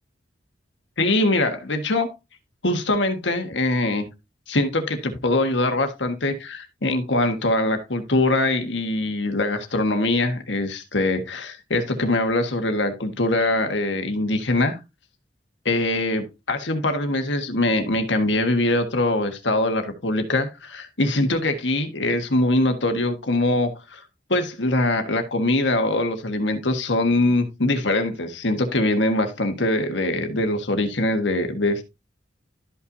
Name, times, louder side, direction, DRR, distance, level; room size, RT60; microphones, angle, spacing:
voice 1, 1.0-2.1 2.6-4.1 4.5-14.8 15.6-24.0 24.3-31.8, left 2 dB, 70° left, 1.5 m, -23 dB
12.5 x 5.6 x 2.7 m
head